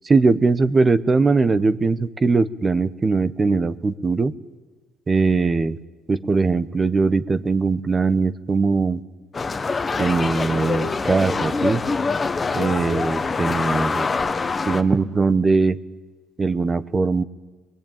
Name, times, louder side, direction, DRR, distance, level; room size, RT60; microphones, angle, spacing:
voice 1, 0.0-4.3 5.1-5.8 6.1-9.0 10.0-11.8 12.5-14.1 14.7-15.8 16.4-17.2, right 4 dB, 30° right, 14 dB, 1.1 m, -20 dB
sound 1, 9.3-14.8, left 4 dB, 35° left, 1.4 m, -24 dB
22.0 x 21.5 x 9.0 m, 1.3 s
supercardioid pair, 65°, 0 cm